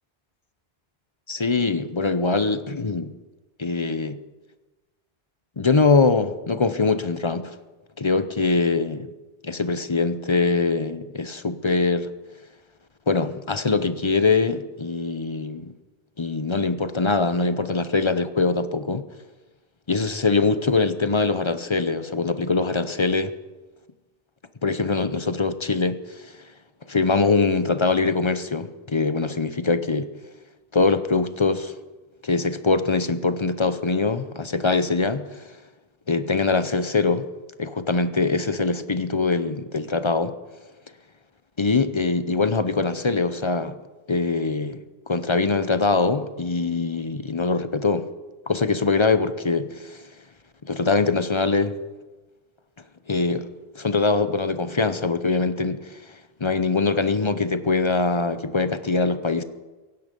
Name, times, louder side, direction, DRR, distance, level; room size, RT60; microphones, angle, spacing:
voice 1, 1.3-3.1 3.6-4.2 5.6-7.6 8.0-9.1 9.4-12.1 13.1-15.7 16.2-19.1 19.9-23.3 24.6-26.4 26.9-30.1 30.7-31.7 32.2-35.5 36.1-37.3 37.6-40.3 41.6-43.7 44.1-48.1 48.5-50.0 50.6-51.8 53.1-53.5 53.7-56.1 56.4-59.4, left 3 dB, 30° left, 0.7 m, -23 dB
17.0 x 16.5 x 5.3 m
omnidirectional pair, 1.0 m